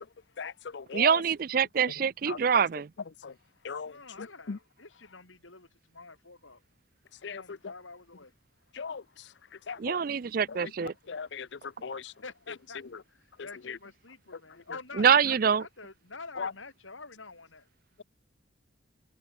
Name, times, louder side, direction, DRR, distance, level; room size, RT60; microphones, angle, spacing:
voice 1, 0.4-1.2 2.3-2.4 3.2-3.3 3.6-3.9 4.2-4.6 7.2-7.4 8.8-9.0 9.7-10.0 11.1-12.1 13.7-13.8 16.4-16.5, left 5 dB, 65° left, 0.5 m, -37 dB
voice 2, 0.9-2.9 9.8-10.9 15.0-15.6, right 7 dB, 45° right, 0.4 m, -25 dB
voice 3, 3.8-6.6 7.3-8.3 9.7-9.8 12.0-17.7, left 4 dB, 80° left, 4.9 m, -48 dB
head